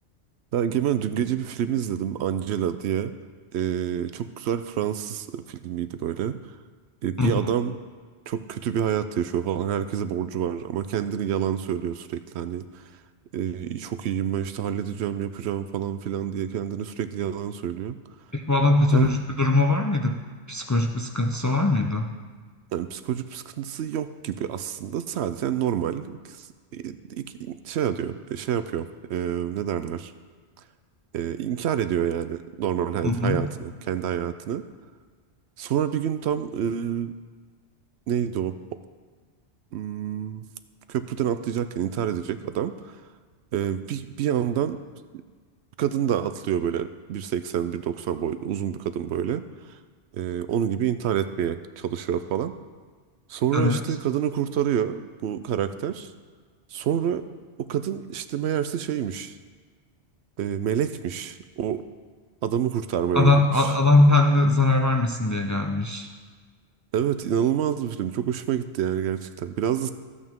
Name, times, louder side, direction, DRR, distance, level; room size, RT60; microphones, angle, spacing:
voice 1, 0.5-3.1 3.5-6.4 7.0-7.8 8.3-12.9 13.3-18.0 18.9-19.2 22.7-26.5 26.7-30.1 31.1-34.6 35.6-37.1 38.1-38.6 39.7-40.4 40.9-43.0 43.5-44.8 45.8-49.8 50.2-52.5 53.3-56.1 56.7-57.2 57.6-59.4 60.4-61.8 62.4-63.7 66.9-69.9, right 9 dB, 75° right, 12 dB, 0.8 m, -28 dB
voice 2, 18.3-20.2 20.5-22.1 33.0-33.4 53.5-53.8 63.1-66.1, left 2 dB, 25° left, 3 dB, 0.4 m, -21 dB
14.0 x 8.5 x 3.6 m, 1.5 s
omnidirectional pair, 1.2 m